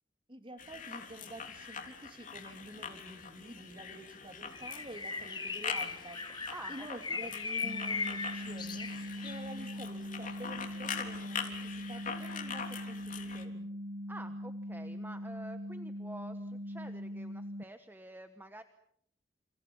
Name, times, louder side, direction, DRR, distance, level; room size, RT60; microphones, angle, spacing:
voice 1, 0.3-13.7, right 1 dB, 30° right, 7 dB, 2.9 m, -49 dB
sound 1, 0.6-13.4, left 6 dB, 45° left, 3.4 m, -43 dB
Bird, 4.5-9.5, left 4 dB, 25° left, 1.7 m, -38 dB
voice 2, 6.5-7.3 14.1-18.6, right 1 dB, 10° right, 8 dB, 1.2 m, -49 dB
sound 2, 7.6-17.6, equal, 65° right, 1.2 m, -41 dB
30.0 x 28.5 x 5.6 m, 0.69 s
head